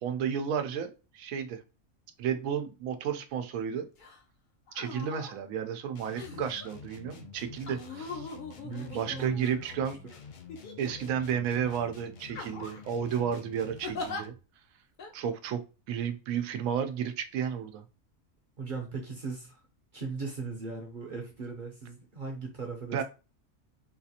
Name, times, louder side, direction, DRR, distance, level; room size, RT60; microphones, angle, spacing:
voice 1, 0.0-1.6 2.2-3.9 4.7-8.3 8.9-10.0 10.8-14.3 15.1-15.6 15.9-17.8 22.9-23.0, right 8 dB, 85° right, 8 dB, 1.0 m, -32 dB
sound 1, 4.0-4.2 4.7-5.3 6.1-6.7 7.7-9.7 10.5-11.2 11.6-11.8 12.3-12.9 13.8-14.2 15.0-15.1, left 3 dB, 45° left, 0.7 m, -41 dB
sound 2, 5.9-14.4, left 6 dB, 90° left, 0.4 m, -49 dB
voice 2, 8.6-10.0 18.6-19.6 19.9-23.0, right 4 dB, 45° right, 1 dB, 0.7 m, -38 dB
3.9 x 2.4 x 2.7 m, 0.32 s
omnidirectional pair, 1.4 m